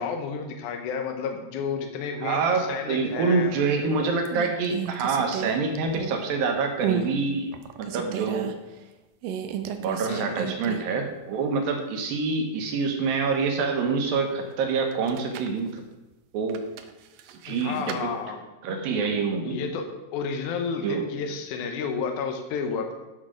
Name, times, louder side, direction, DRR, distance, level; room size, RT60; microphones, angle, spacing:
voice 1, 0.0-3.5 10.1-10.5 17.5-18.4 19.4-19.8 20.1-22.9, left 5 dB, 85° left, 4 dB, 1.7 m, -31 dB
voice 2, 2.2-7.5 7.8-8.5 9.8-15.8 16.3-16.6 17.4-18.1 18.6-19.6 20.8-21.0, right 4 dB, 70° right, 3 dB, 2.5 m, -26 dB
sound 1, 3.5-3.9 4.2-6.4 6.8-7.1 7.5-8.5 9.2-11.0 11.3-11.4 14.9-15.6 16.5-18.0, right 10 dB, 85° right, 1.9 m, -32 dB
10.5 x 6.3 x 4.9 m, 1.1 s
omnidirectional pair, 4.8 m